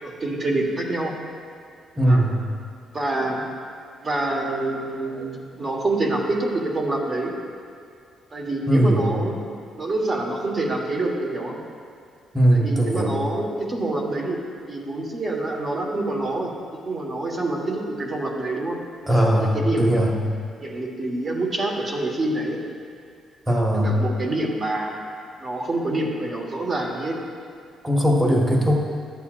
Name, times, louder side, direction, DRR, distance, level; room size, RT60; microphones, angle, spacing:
voice 1, 0.0-1.1 2.1-2.3 2.9-3.5 4.0-7.3 8.3-9.4 9.7-11.6 12.5-14.4 14.7-16.5 16.8-18.8 19.3-20.2 20.6-22.6 23.7-24.9 25.4-27.1, right 2 dB, 35° right, -1 dB, 1.6 m, -26 dB
voice 2, 2.0-2.4 8.7-9.0 12.3-13.1 19.1-20.1 23.5-23.9 27.8-28.8, equal, 15° right, -2 dB, 1.5 m, -19 dB
12.0 x 8.2 x 2.6 m, 2.3 s
cardioid pair, 90°, 0 cm